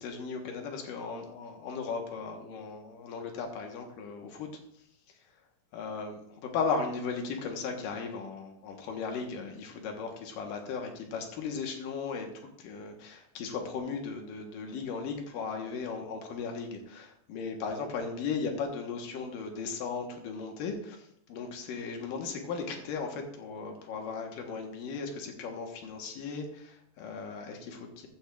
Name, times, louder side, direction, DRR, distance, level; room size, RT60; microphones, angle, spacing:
voice 1, 0.0-4.8 5.1-5.2 5.7-12.3 12.6-28.1, left 5 dB, 85° left, 3 dB, 3.0 m, -36 dB
15.0 x 9.0 x 2.5 m, 0.73 s
omnidirectional pair, 3.8 m